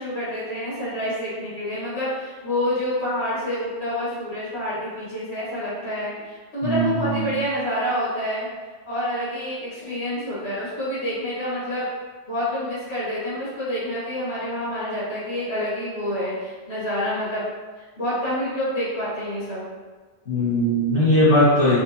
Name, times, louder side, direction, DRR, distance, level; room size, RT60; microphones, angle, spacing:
voice 1, 0.0-8.5 8.9-11.8 12.3-17.4 18.0-19.6, equal, 70° left, -11 dB, 2.0 m, -27 dB
voice 2, 6.6-7.3 20.3-21.8, equal, 85° left, -12 dB, 2.1 m, -19 dB
5.0 x 2.4 x 2.8 m, 1.4 s
omnidirectional pair, 1.1 m